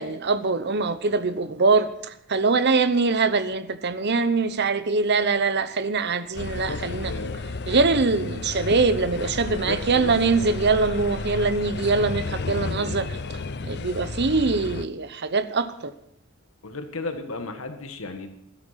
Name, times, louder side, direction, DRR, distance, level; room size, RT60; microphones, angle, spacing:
voice 1, 0.0-7.1 7.7-13.2 13.6-15.9, right 4 dB, 50° right, 0.9 m, -23 dB
sound 1, 6.4-14.9, left 3 dB, 50° left, 0.7 m, -32 dB
voice 2, 6.5-7.4 9.4-10.2 16.6-18.3, left 2 dB, 70° left, 1.6 m, -34 dB
16.0 x 13.0 x 5.8 m
head